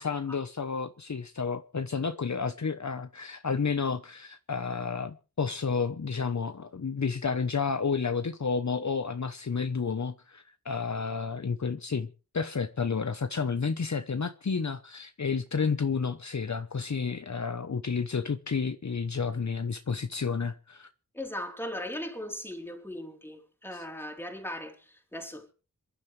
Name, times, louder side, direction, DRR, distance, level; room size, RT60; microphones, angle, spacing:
voice 1, 0.0-12.1 12.3-20.9 23.7-23.8, left 5 dB, 50° left, 1.0 m, -31 dB
voice 2, 21.1-25.5, left 1 dB, 5° left, 3.9 m, -38 dB
27.0 x 11.5 x 3.3 m
wide cardioid pair, 70°, 36 cm